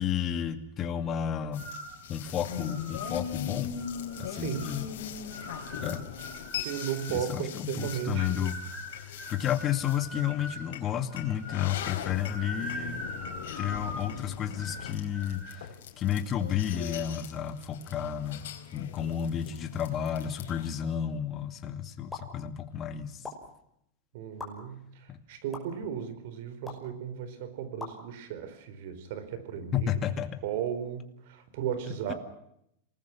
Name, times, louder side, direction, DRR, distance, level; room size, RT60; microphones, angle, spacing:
voice 1, 0.0-1.7 2.1-3.7 4.2-4.9 5.8-6.0 7.1-13.0 13.6-18.5 18.7-23.3 25.1-25.2 29.7-30.4 32.1-32.2, left 9 dB, 30° left, 8 dB, 2.4 m, -32 dB
sound 1, 1.5-20.7, left 8 dB, 75° left, 4.2 m, -41 dB
sound 2, 1.6-2.0 2.5-3.1 3.8-4.7 5.3-7.2 7.8-10.6 11.1-11.7 12.1-14.1 14.6-14.9 15.1-15.6, left 1 dB, 15° right, 6.3 m, -42 dB
voice 2, 4.3-4.7 6.6-8.5 19.0-19.1 24.1-24.9 25.3-29.9 30.4-32.1, right 9 dB, 65° right, 11 dB, 4.6 m, -35 dB
sound 3, 22.1-22.3 23.2-23.3 24.4-24.5 25.5-25.6 26.7-26.9 27.8-27.9, left 4 dB, 5° left, 5.7 m, -39 dB
27.5 x 20.0 x 6.1 m, 0.75 s
supercardioid pair, 140°, 0 cm